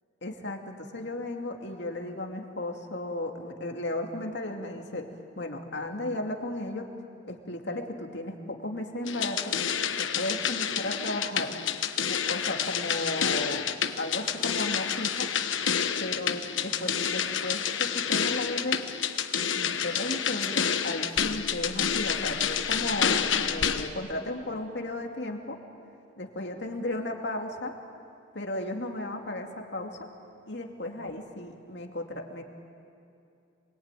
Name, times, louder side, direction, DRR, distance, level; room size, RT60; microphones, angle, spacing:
voice 1, 0.2-5.1 5.4-6.9 7.3-9.4 10.0-11.5 12.1-13.7 14.0-15.3 16.0-18.8 19.5-25.6 26.1-27.7 28.3-30.1 30.5-32.4, left 1 dB, 60° left, 3 dB, 2.6 m, -34 dB
sound 1, 9.1-23.9, left 8 dB, 75° left, 1.2 m, -29 dB
27.5 x 22.5 x 9.2 m, 2.6 s
head